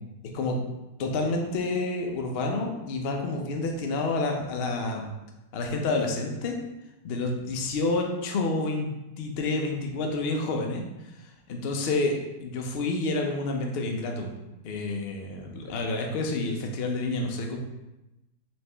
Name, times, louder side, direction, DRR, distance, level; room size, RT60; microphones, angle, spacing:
voice 1, 1.0-5.1 5.5-6.6 7.0-8.9 9.2-10.8 11.5-14.3 14.6-17.6, left 2 dB, 70° left, 2 dB, 0.5 m, -29 dB
4.3 x 3.1 x 3.3 m, 0.97 s
omnidirectional pair, 1.8 m